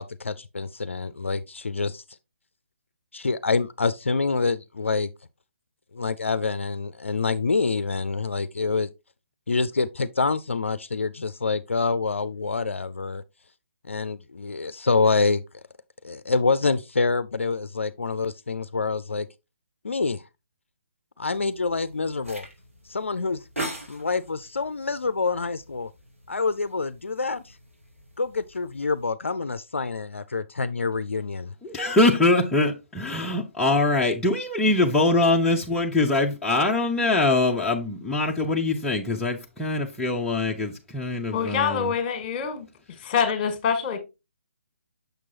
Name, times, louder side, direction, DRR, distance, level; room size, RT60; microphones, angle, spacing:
voice 1, 0.0-2.0 3.1-5.1 5.9-8.9 9.5-13.2 13.9-15.4 16.0-19.3 19.8-20.2 21.2-22.5 22.9-23.4 23.9-25.9 26.3-27.6 28.2-31.5, left 4 dB, 70° left, 0.4 m, -26 dB
sound 1, 21.3-29.1, right 1 dB, 85° right, 3.0 m, -42 dB
voice 2, 31.6-41.9, left 2 dB, 5° left, 0.6 m, -23 dB
voice 3, 41.3-42.7 43.0-44.0, left 7 dB, 25° left, 1.5 m, -25 dB
6.7 x 6.0 x 2.7 m
figure-of-eight pair, 140°, 7 cm